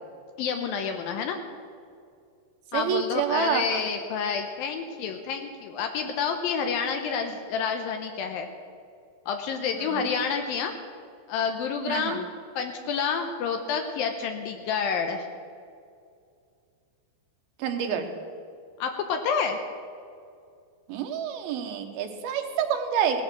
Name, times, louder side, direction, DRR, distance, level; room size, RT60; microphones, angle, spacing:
voice 1, 0.4-1.4 2.7-8.5 9.3-10.7 11.3-12.3 12.6-15.2 18.8-19.6, left 6 dB, 80° left, 5 dB, 2.6 m, -29 dB
voice 2, 2.7-3.6 9.8-10.1 11.9-12.2 17.6-18.1 20.9-23.2, right 8 dB, 85° right, 5 dB, 3.1 m, -28 dB
17.5 x 11.5 x 6.2 m, 2.4 s
omnidirectional pair, 4.3 m